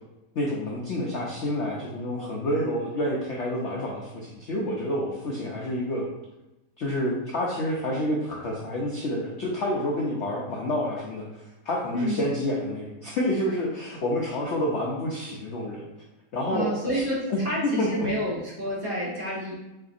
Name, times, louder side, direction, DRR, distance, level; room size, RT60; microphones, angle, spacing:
voice 1, 0.3-6.1 6.8-15.9 16.3-17.0 17.3-18.1, left 1 dB, 70° left, -3 dB, 0.6 m, -28 dB
voice 2, 16.5-19.5, equal, 40° right, -7 dB, 1.0 m, -29 dB
3.8 x 3.4 x 2.4 m, 1.0 s
omnidirectional pair, 1.8 m